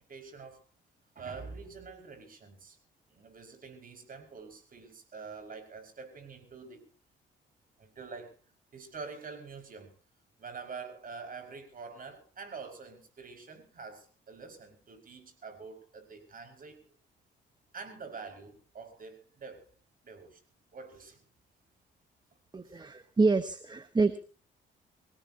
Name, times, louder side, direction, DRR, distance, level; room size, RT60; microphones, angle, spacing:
voice 1, 0.1-0.6 1.1-2.8 3.1-6.9 7.8-8.4 8.7-9.9 10.4-17.0 17.7-19.7 20.0-20.4 20.7-21.3 22.7-22.8, right 4 dB, 45° right, 5 dB, 5.5 m, -46 dB
voice 2, 22.5-24.3, right 3 dB, 20° right, 11 dB, 1.1 m, -27 dB
24.5 x 17.5 x 2.9 m, 0.34 s
cardioid pair, 90°, 20 cm